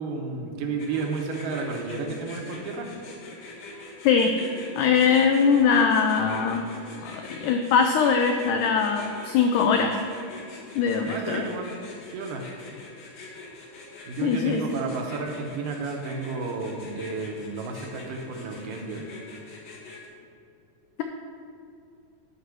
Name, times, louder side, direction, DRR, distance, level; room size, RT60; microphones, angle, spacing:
voice 1, 0.0-2.9 11.1-11.7 12.1-12.5 14.1-19.0, right 4 dB, 75° right, 2 dB, 2.3 m, -32 dB
sound 1, 0.8-20.1, left 3 dB, 65° left, 2.8 m, -44 dB
voice 2, 4.8-6.6 7.0-10.0 10.7-11.4 14.2-14.6, left 6 dB, 90° left, 5 dB, 1.7 m, -21 dB
9.5 x 4.1 x 7.0 m, 2.6 s
omnidirectional pair, 4.1 m